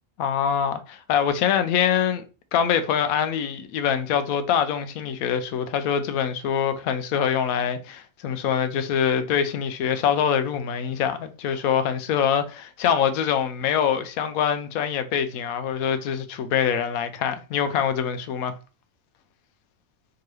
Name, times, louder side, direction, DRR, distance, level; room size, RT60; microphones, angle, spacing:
voice 1, 0.2-2.2 2.5-18.6, left 8 dB, 90° left, 1.1 m, -24 dB
4.5 x 3.0 x 3.1 m
omnidirectional pair, 1.4 m